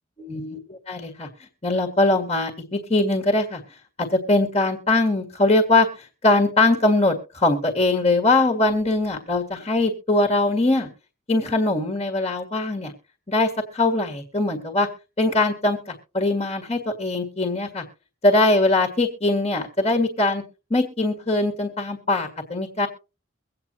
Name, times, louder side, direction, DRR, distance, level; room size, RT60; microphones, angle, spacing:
voice 1, 0.2-1.3 1.6-3.6 4.0-10.9 11.3-12.9 13.3-14.9 15.2-17.8 18.2-20.4 20.7-22.9, left 2 dB, 30° left, 4 dB, 1.7 m, -21 dB
23.5 x 8.7 x 2.8 m, 0.32 s
head